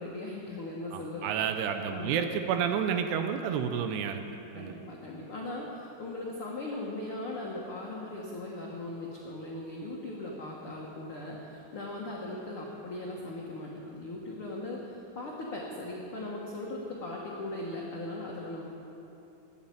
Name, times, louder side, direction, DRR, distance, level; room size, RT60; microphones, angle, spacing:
voice 1, 0.0-1.3 1.9-2.2 4.5-18.6, left 2 dB, 70° left, -3 dB, 1.2 m, -39 dB
voice 2, 0.9-4.2 4.5-4.8, right 7 dB, 80° right, 7 dB, 2.8 m, -30 dB
13.0 x 9.8 x 9.3 m, 2.9 s
omnidirectional pair, 4.9 m